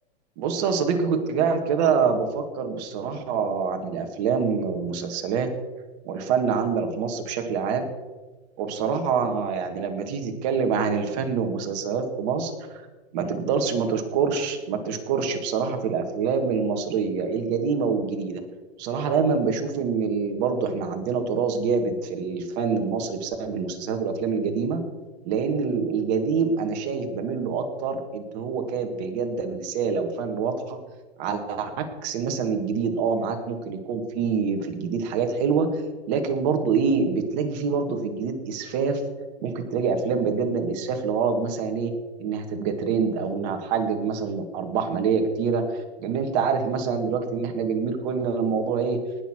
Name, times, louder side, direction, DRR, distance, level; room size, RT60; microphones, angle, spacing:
voice 1, 0.4-5.5 6.1-7.9 8.6-12.8 13.1-18.4 18.8-24.8 25.2-30.8 31.2-35.8 36.1-39.0 39.4-41.9 42.2-49.0, right 5 dB, 40° right, 5 dB, 2.0 m, -26 dB
19.0 x 6.6 x 6.2 m, 1.3 s
hypercardioid pair, 145°, 33 cm